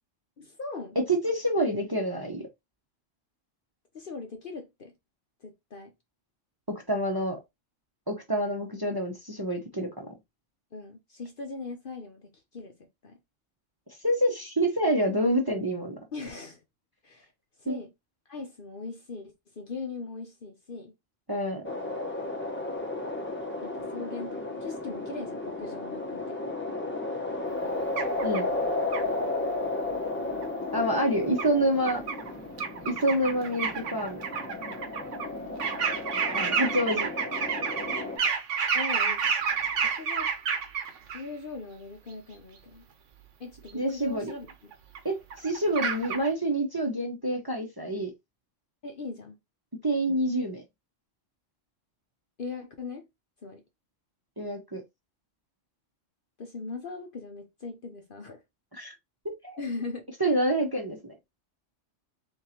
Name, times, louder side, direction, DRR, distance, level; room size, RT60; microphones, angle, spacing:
voice 1, 0.4-1.0 3.9-4.9 5.4-5.9 10.7-12.8 13.0-13.2 16.1-16.6 17.0-17.3 17.6-17.9 18.3-20.9 23.6-26.3 38.7-39.3 39.8-40.3 41.1-42.9 43.4-44.7 48.8-49.4 52.4-53.1 53.4-53.6 56.4-58.4 59.6-60.1, left 3 dB, 50° left, 0.9 m, -40 dB
voice 2, 1.1-2.5 6.7-7.4 8.1-10.1 14.0-16.0 17.7-17.8 21.3-21.6 28.2-28.5 30.7-32.0 32.8-34.2 36.3-37.1 43.7-44.3 45.0-48.1 49.8-50.6 54.4-54.8 58.7-58.9 59.4-59.6 60.2-61.1, right 1 dB, 20° right, 0.8 m, -27 dB
sound 1, 21.6-38.2, left 2 dB, 10° left, 0.8 m, -34 dB
sound 2, 28.0-28.4 28.9-29.0 30.4-30.5 31.4-31.5 31.9-32.3 32.6-35.3 35.6-41.2 43.7-43.8 44.3-45.0 45.3-46.3, right 6 dB, 70° right, 1.2 m, -29 dB
3.8 x 3.7 x 2.8 m
omnidirectional pair, 1.3 m